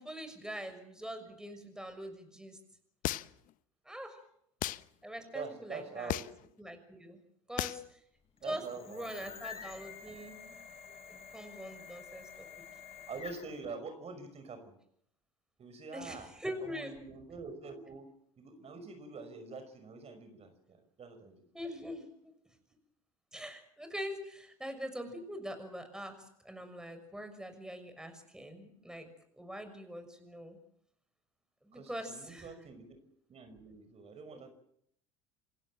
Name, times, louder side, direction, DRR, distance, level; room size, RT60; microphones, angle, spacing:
voice 1, 0.0-2.6 3.8-4.2 5.0-6.1 6.6-7.2 7.5-8.0 8.4-10.6 11.1-12.5 15.9-17.0 21.5-22.3 23.3-26.2 26.4-29.1 29.4-30.6 31.6-32.5 34.3-34.4, equal, 5° right, 8 dB, 6.2 m, -43 dB
sound 1, 3.0-3.5 4.6-4.8 6.1-6.5 7.6-7.9, left 15 dB, 55° left, 1.0 m, -34 dB
voice 2, 5.3-6.2 8.4-9.6 12.9-14.7 15.6-16.3 16.6-21.3 31.7-33.0 33.3-34.5, right 4 dB, 40° right, 8 dB, 5.7 m, -46 dB
sound 2, 8.4-13.7, left 6 dB, 35° left, 5.5 m, -49 dB
28.5 x 17.0 x 7.6 m, 0.71 s
hypercardioid pair, 75°, 17 cm